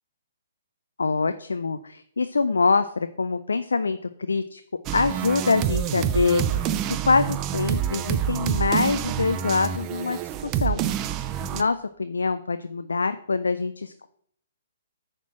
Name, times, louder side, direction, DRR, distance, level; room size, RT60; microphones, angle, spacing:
voice 1, 1.0-4.6 4.9-6.7 7.1-10.8 11.5-14.1, left 4 dB, 70° left, 10 dB, 0.4 m, -25 dB
sound 1, 4.9-11.6, right 9 dB, 25° right, 0.5 m, -27 dB
9.3 x 4.4 x 5.9 m, 0.65 s
figure-of-eight pair, 125°, 0 cm